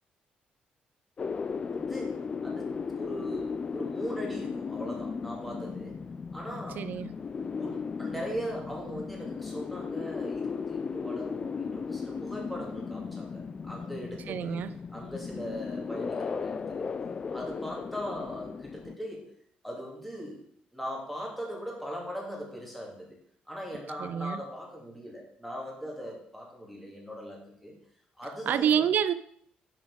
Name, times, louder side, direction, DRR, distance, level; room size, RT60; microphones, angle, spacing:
sound 1, 1.2-19.0, left 5 dB, 35° left, 0.3 m, -36 dB
voice 1, 1.7-6.0 6.3-6.8 7.5-14.7 14.9-16.9 17.3-19.2 19.6-20.4 20.7-23.2 23.5-27.7 28.2-28.8, equal, ahead, 2.3 m, -40 dB
voice 2, 6.8-7.1 14.3-14.7 24.0-24.4 28.5-29.1, right 9 dB, 65° right, 0.5 m, -27 dB
6.3 x 4.9 x 4.8 m
cardioid pair, 95°, 3 cm